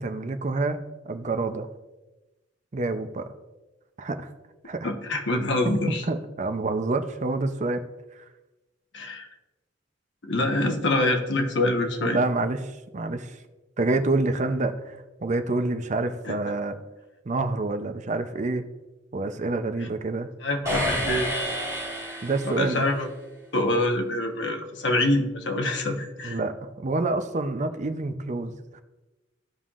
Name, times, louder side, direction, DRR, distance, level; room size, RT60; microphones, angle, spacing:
voice 1, 0.0-1.7 2.7-3.2 4.0-4.3 4.6-4.9 5.6-7.8 12.0-13.4 13.8-16.8 17.3-18.6 19.1-20.3 22.2-22.8 26.2-28.8, right 2 dB, 40° right, 8 dB, 0.6 m, -27 dB
voice 2, 4.8-6.0 8.9-9.3 10.2-12.2 16.2-16.3 20.4-21.3 22.6-23.1 23.5-26.4, left 2 dB, 70° left, 3 dB, 1.2 m, -25 dB
sound 1, 20.6-22.9, equal, 15° right, 2.7 m, -29 dB
15.5 x 5.6 x 2.5 m, 1.1 s
head